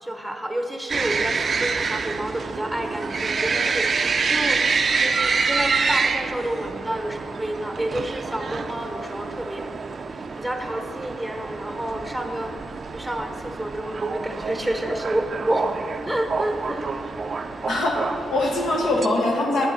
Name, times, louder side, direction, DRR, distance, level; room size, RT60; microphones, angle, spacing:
voice 1, 0.0-4.7 5.0-9.7 10.1-12.6 12.9-15.8 16.1-16.9, right 1 dB, ahead, 4 dB, 0.9 m, -29 dB
sound 1, 0.9-19.1, right 4 dB, 50° right, 0.4 m, -27 dB
voice 2, 17.7-19.7, left 2 dB, 70° left, -1 dB, 1.2 m, -23 dB
8.2 x 7.3 x 3.9 m, 2.7 s
supercardioid pair, 50°, 0 cm